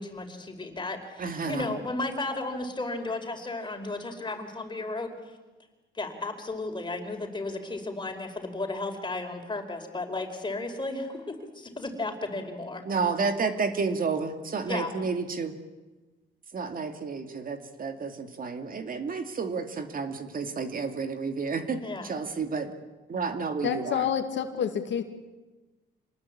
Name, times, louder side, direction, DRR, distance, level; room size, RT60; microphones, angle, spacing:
voice 1, 0.0-5.2 5.9-12.8 14.7-14.9 21.8-22.1, left 2 dB, 25° left, 4 dB, 4.9 m, -34 dB
voice 2, 1.2-1.7 12.8-15.5 16.5-22.7 23.1-24.1, right 4 dB, 45° right, 7 dB, 2.4 m, -31 dB
voice 3, 23.6-25.0, left 8 dB, 65° left, 7 dB, 2.4 m, -28 dB
27.0 x 20.0 x 8.6 m, 1.2 s
cardioid pair, 90°, 20 cm